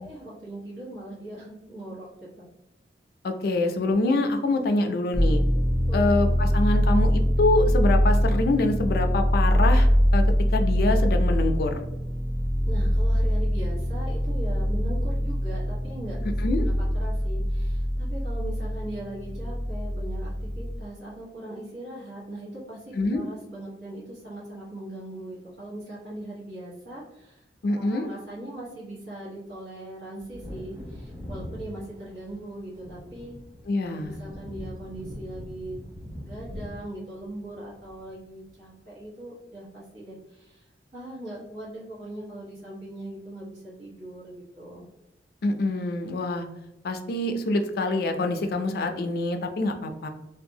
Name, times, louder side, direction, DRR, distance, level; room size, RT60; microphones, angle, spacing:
voice 1, 0.0-2.5 5.9-6.1 12.7-16.2 16.8-27.4 27.7-33.4 34.0-35.9 36.1-40.6 40.9-44.8, right 1 dB, 80° right, -8 dB, 1.2 m, -40 dB
voice 2, 3.2-5.4 5.9-10.2 10.5-11.8 16.4-16.7 22.9-23.2 27.6-28.1 33.7-34.2 45.4-46.5 46.8-50.1, left 2 dB, 60° left, 6 dB, 0.4 m, -25 dB
sound 1, 5.1-20.8, equal, ahead, 0.5 m, -23 dB
Wind / Thunder, 30.2-38.4 38.7-38.8, left 1 dB, 30° right, 1.5 m, -41 dB
2.6 x 2.3 x 2.7 m, 0.89 s
head